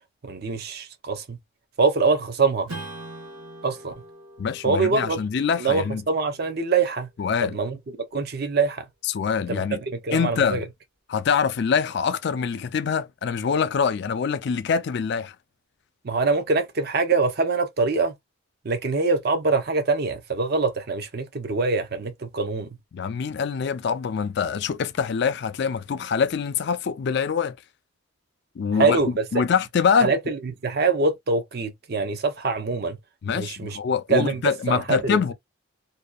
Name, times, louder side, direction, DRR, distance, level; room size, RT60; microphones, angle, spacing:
voice 1, 0.2-1.4 1.8-2.7 3.6-3.9 4.6-5.2 5.6-7.1 7.4-7.8 8.1-8.8 9.5-9.6 10.0-10.6 16.0-18.1 18.6-22.7 28.8-29.1 29.3-29.4 30.0-33.0 33.3-33.8 34.1-35.3, right 4 dB, 45° right, 0.5 m, -24 dB
Strum, 2.7-7.6, right 2 dB, 85° right, 1.3 m, -43 dB
voice 2, 4.4-6.0 7.2-7.6 9.1-9.8 10.1-10.6 11.1-15.3 22.9-27.5 28.6-29.0 29.3-30.1 33.2-35.3, left 6 dB, 50° left, 0.3 m, -24 dB
2.7 x 2.2 x 2.3 m
head